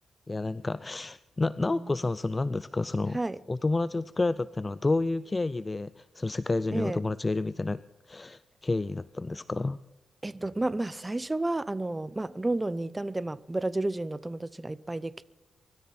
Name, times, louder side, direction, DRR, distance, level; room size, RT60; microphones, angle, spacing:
voice 1, 0.3-3.2 3.5-7.8 8.1-9.8, left 3 dB, 25° left, 0.4 m, -30 dB
voice 2, 10.2-15.2, right 2 dB, 15° right, 0.6 m, -31 dB
24.0 x 13.5 x 4.3 m
cardioid pair, 80°, 0 cm